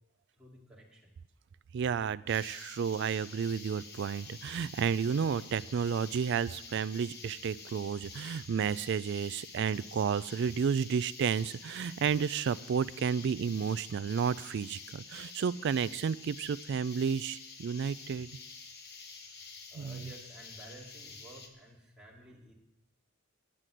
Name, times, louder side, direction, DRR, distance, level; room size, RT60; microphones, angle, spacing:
voice 1, 0.4-1.1 19.2-19.4 19.7-22.5, right 1 dB, 5° right, -5 dB, 2.3 m, -53 dB
voice 2, 1.7-18.3 19.8-20.1, right 6 dB, 55° right, 18 dB, 0.3 m, -32 dB
sound 1, 2.3-21.5, left 5 dB, 45° left, 1.2 m, -49 dB
10.0 x 7.5 x 7.8 m, 0.91 s
head